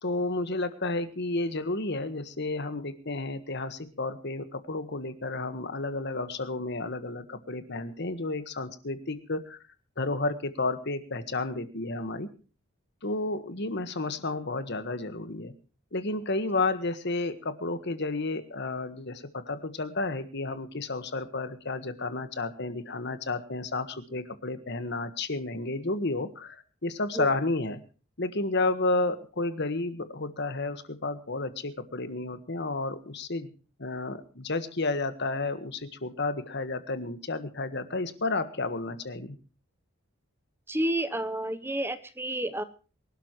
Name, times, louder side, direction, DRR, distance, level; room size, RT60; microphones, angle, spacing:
voice 1, 0.0-9.6 10.0-12.3 13.0-15.5 15.9-27.8 28.2-33.5 33.8-39.4, left 2 dB, 55° left, 11 dB, 1.5 m, -31 dB
voice 2, 40.7-42.6, right 1 dB, 10° right, 11 dB, 0.9 m, -30 dB
24.0 x 12.5 x 3.1 m, 0.36 s
head